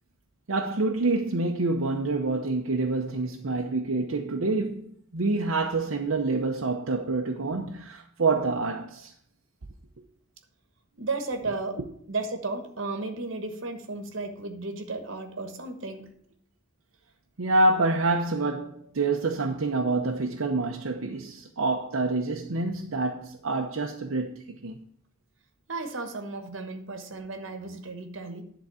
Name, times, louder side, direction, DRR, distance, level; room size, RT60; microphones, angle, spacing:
voice 1, 0.5-9.1 17.4-24.8, right 3 dB, 85° right, 0.8 m, -27 dB
voice 2, 11.0-11.8 12.1-16.1 25.7-28.4, right 3 dB, 70° right, 1.3 m, -34 dB
10.5 x 3.9 x 6.9 m
head